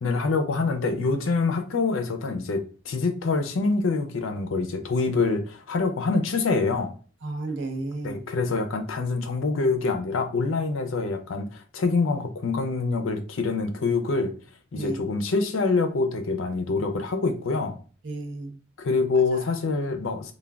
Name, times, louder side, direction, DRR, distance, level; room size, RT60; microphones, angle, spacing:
voice 1, 0.0-6.9 8.0-14.3 14.7-17.8 18.8-20.3, left 3 dB, 80° left, 0.5 m, -25 dB
voice 2, 7.2-8.3 14.7-15.0 18.0-18.6 19.3-19.5, right 2 dB, 65° right, 0.6 m, -33 dB
3.3 x 2.2 x 2.3 m
head